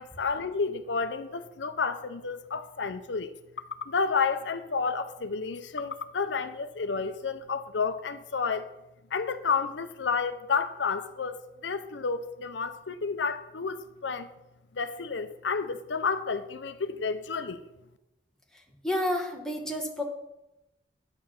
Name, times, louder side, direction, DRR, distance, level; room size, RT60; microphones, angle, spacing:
voice 1, 0.0-3.3 3.8-8.7 9.1-14.3 14.7-17.6, left 5 dB, 80° left, 0.6 m, -31 dB
voice 2, 18.8-20.0, left 1 dB, 5° left, 1.3 m, -29 dB
9.9 x 7.4 x 5.8 m
head